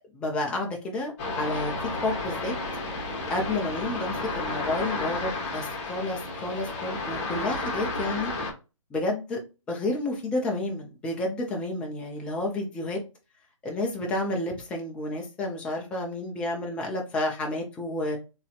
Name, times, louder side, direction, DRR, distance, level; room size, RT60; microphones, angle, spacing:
voice 1, 0.1-1.7 2.0-2.5 3.3-8.3 8.9-9.4 9.7-13.0 13.6-18.2, left 2 dB, 5° left, 0.5 m, -30 dB
sound 1, 1.2-8.5, left 3 dB, 25° left, 1.2 m, -32 dB
3.9 x 3.0 x 2.4 m
figure-of-eight pair, 140°, 17 cm